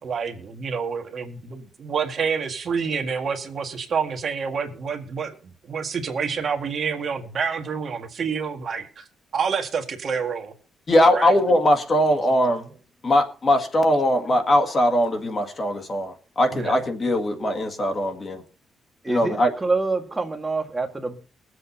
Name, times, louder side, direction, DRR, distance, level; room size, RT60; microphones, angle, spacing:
voice 1, 0.0-9.1 9.3-10.5 11.1-11.3 14.2-14.4 16.5-16.8 17.4-17.6, right 6 dB, 40° right, 1.8 m, -28 dB
voice 2, 10.9-12.6 13.0-18.4 19.1-19.5, left 1 dB, 30° left, 1.8 m, -20 dB
voice 3, 19.0-21.2, right 3 dB, 15° right, 1.6 m, -26 dB
21.0 x 7.8 x 4.2 m
cardioid pair, 165°, 0 cm